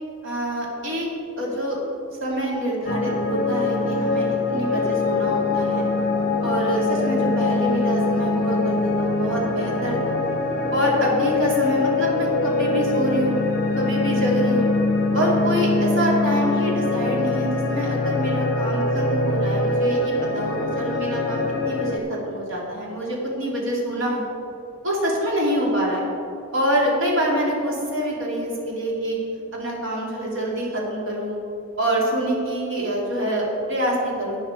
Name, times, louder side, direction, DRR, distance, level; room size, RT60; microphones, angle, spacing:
voice 1, 0.2-1.1 1.4-1.8 2.2-5.9 6.4-10.1 10.7-13.4 13.8-14.7 15.1-24.2 24.8-26.0 26.5-29.2 29.5-31.4 31.8-34.4, equal, 65° right, -3 dB, 2.8 m, -25 dB
sound 1, 2.9-22.0, left 3 dB, 45° left, 0.9 m, -23 dB
11.5 x 9.4 x 4.5 m, 2.8 s
head